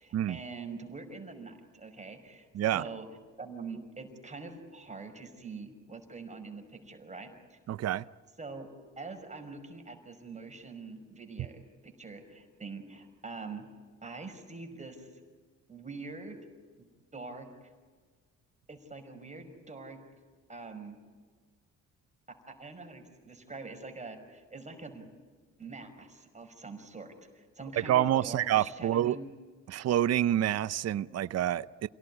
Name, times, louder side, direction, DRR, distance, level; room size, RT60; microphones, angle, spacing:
voice 1, 0.0-3.1 3.4-7.6 8.4-8.7 9.0-13.7 14.0-15.2 15.7-16.4 16.8-16.9 17.1-17.7 18.7-20.0 20.5-21.0 22.5-25.1 25.6-29.3, right 3 dB, 25° right, 5.6 m, -44 dB
voice 2, 7.7-8.0 27.9-29.2 29.7-31.9, right 12 dB, 55° right, 0.7 m, -27 dB
28.0 x 18.0 x 9.8 m
cardioid pair, 90°, 30 cm